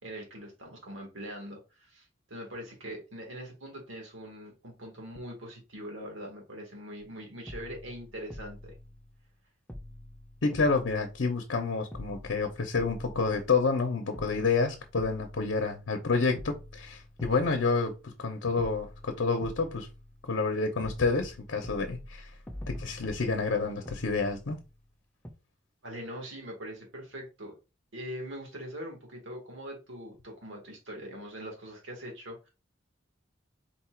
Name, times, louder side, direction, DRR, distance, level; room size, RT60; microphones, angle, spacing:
voice 1, 0.0-8.7 25.8-27.6 27.9-32.5, equal, 85° right, 1.8 m, -42 dB
sound 1, 7.0-7.2 7.5-9.4 9.7-11.6 11.9-13.8 14.1-16.1 16.4-18.2 18.6-20.5 20.8-24.9 25.2-25.3, left 1 dB, 10° left, 0.6 m, -46 dB
voice 2, 10.4-19.9 20.3-22.3 22.7-24.6, left 4 dB, 70° left, 0.8 m, -29 dB
4.3 x 2.4 x 4.4 m
head